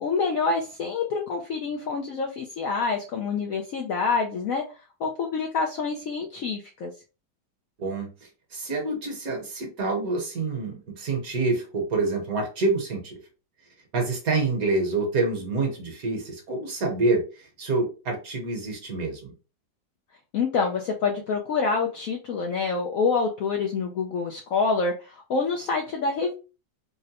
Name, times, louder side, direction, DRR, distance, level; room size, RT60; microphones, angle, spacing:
voice 1, 0.0-4.6 5.0-6.9 20.3-26.3, left 4 dB, 75° left, 2 dB, 0.8 m, -27 dB
voice 2, 8.5-13.2 13.9-19.3, right 3 dB, 60° right, 2 dB, 1.2 m, -27 dB
3.7 x 2.1 x 2.8 m, 0.32 s
omnidirectional pair, 2.0 m